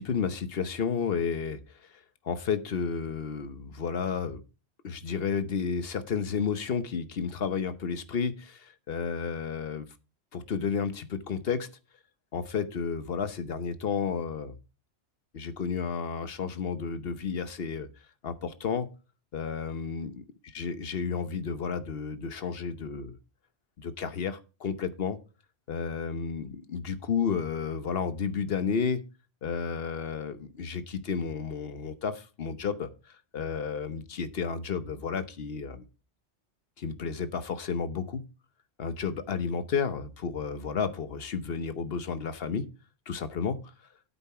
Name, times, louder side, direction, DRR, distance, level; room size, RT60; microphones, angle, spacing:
voice 1, 0.0-1.6 2.2-4.4 4.8-9.9 10.3-11.7 12.3-14.5 15.3-17.9 18.2-18.9 19.3-20.2 20.5-23.2 23.8-25.2 25.7-29.0 29.4-32.9 33.3-35.8 36.8-38.2 38.8-42.7 43.1-43.6, left 6 dB, 60° left, 12 dB, 1.1 m, -32 dB
9.2 x 8.3 x 4.7 m, 0.32 s
omnidirectional pair, 1.2 m